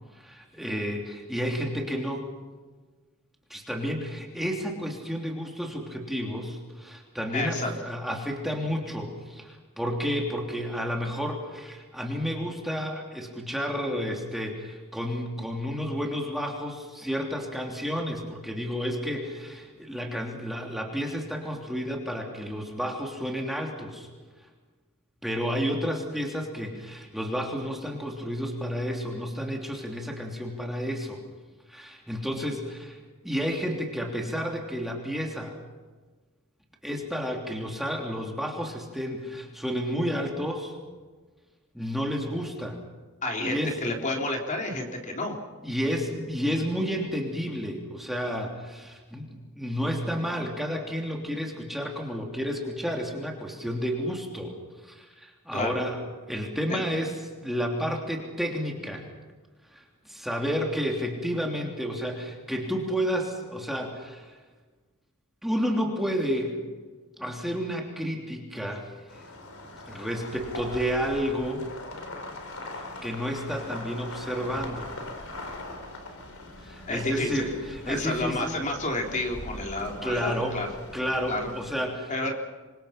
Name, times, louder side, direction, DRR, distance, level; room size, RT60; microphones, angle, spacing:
voice 1, 0.1-2.3 3.5-24.1 25.2-31.2 31.7-35.5 36.8-40.8 41.7-42.8 43.4-43.7 45.6-54.6 54.8-56.0 56.3-57.2 57.4-59.0 59.7-64.3 65.4-66.6 67.2-68.9 69.9-71.7 72.7-74.9 76.6-78.5 80.0-80.6 80.9-82.1, equal, ahead, 0 dB, 3.2 m, -31 dB
voice 2, 7.3-7.7 43.2-45.4 55.5-55.7 56.7-56.8 76.9-77.4 77.9-80.7 81.3-81.5 82.1-82.3, left 2 dB, 35° left, 1 dB, 3.6 m, -30 dB
sound 1, 69.1-81.7, left 2 dB, 65° left, 4.5 m, -41 dB
28.0 x 24.0 x 5.9 m, 1.4 s
head